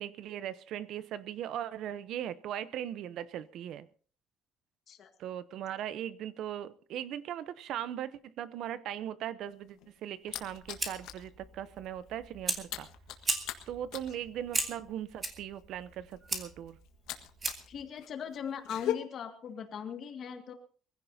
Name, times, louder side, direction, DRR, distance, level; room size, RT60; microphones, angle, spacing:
voice 1, 0.0-3.9 5.2-12.9 13.7-16.8, right 10 dB, 55° right, 0.7 m, -39 dB
sound 1, 9.5-11.3 11.6-11.9 12.1-17.7 18.0-18.9, left 13 dB, 80° left, 1.5 m, -40 dB
Fire, 10.3-17.8, right 3 dB, 20° right, 2.0 m, -38 dB
voice 2, 17.7-20.5, left 7 dB, 40° left, 2.0 m, -39 dB
23.5 x 16.0 x 2.7 m
cardioid pair, 175°, 0 cm